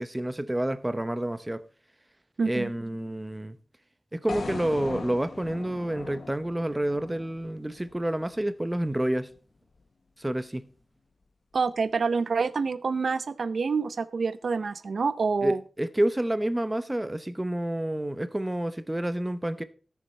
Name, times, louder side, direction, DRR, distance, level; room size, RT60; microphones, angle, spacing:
voice 1, 0.0-1.6 2.4-3.6 4.1-9.3 10.2-10.7 15.4-19.6, right 1 dB, 15° right, 0.7 m, -29 dB
voice 2, 2.4-2.7 11.5-15.6, right 4 dB, 70° right, 0.6 m, -27 dB
sound 1, 4.3-8.4, left 4 dB, 65° left, 0.8 m, -39 dB
14.5 x 6.9 x 4.2 m
wide cardioid pair, 120°, 0 cm